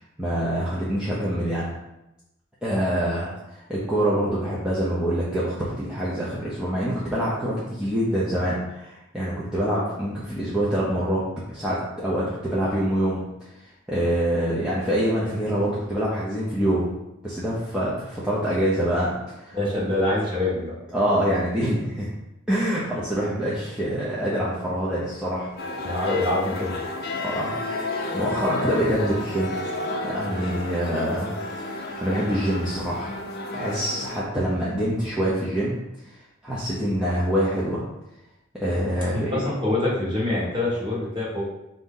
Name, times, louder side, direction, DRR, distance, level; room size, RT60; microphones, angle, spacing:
voice 1, 0.2-1.7 2.6-11.2 11.5-13.2 13.9-16.9 17.2-19.6 20.9-22.1 22.5-25.5 27.2-29.6 30.0-33.2 33.5-35.8 36.0-37.8 38.6-39.3, equal, 5° right, -9 dB, 0.5 m, -25 dB
voice 2, 19.5-20.7 25.8-26.9 39.1-41.4, left 2 dB, 25° right, -6 dB, 1.2 m, -25 dB
sound 1, 25.6-34.2, left 2 dB, 50° left, 0.5 m, -31 dB
4.0 x 2.7 x 3.7 m, 0.92 s
head